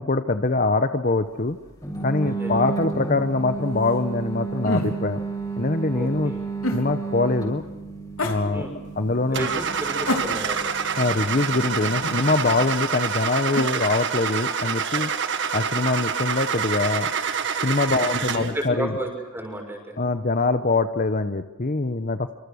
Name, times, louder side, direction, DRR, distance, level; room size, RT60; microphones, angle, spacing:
voice 1, 0.0-1.6 2.0-5.2 5.6-6.3 6.7-7.6 8.2-8.7 9.0-9.5 11.0-15.1 15.5-17.1 17.6-18.9 20.0-22.4, left 3 dB, 40° left, 10 dB, 0.9 m, -23 dB
sound 1, 1.8-12.6, right 4 dB, 15° left, 6.4 m, -33 dB
voice 2, 2.2-2.8 5.9-6.4 8.5-8.7 9.3-10.6 17.9-20.0, right 1 dB, 10° right, 2 dB, 6.5 m, -33 dB
sound 2, 4.6-5.0 6.6-6.9 8.2-8.4 10.1-10.7 12.0-12.3 13.5-13.8, left 1 dB, 70° left, 3.8 m, -27 dB
Car / Engine starting, 9.3-18.6, right 6 dB, 55° right, 1.8 m, -27 dB
26.5 x 26.0 x 6.5 m, 1.2 s
head